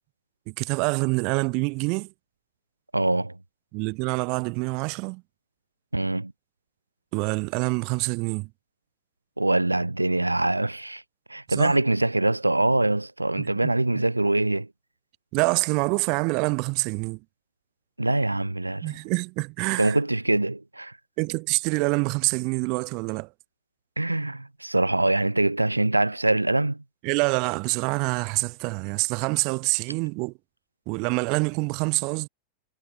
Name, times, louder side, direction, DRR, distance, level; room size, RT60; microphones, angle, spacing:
voice 1, 0.5-2.1 3.7-5.2 7.1-8.5 11.5-11.8 13.4-13.7 15.3-17.2 18.8-20.0 21.2-23.3 27.0-30.3 30.9-32.3, right 30 dB, 45° right, 1.5 m, -26 dB
voice 2, 2.9-3.4 5.9-6.3 9.4-11.0 11.3-14.7 18.0-18.9 19.8-20.9 24.0-26.8, right 2 dB, 85° right, 1.3 m, -24 dB
figure-of-eight pair, 90°, 0 cm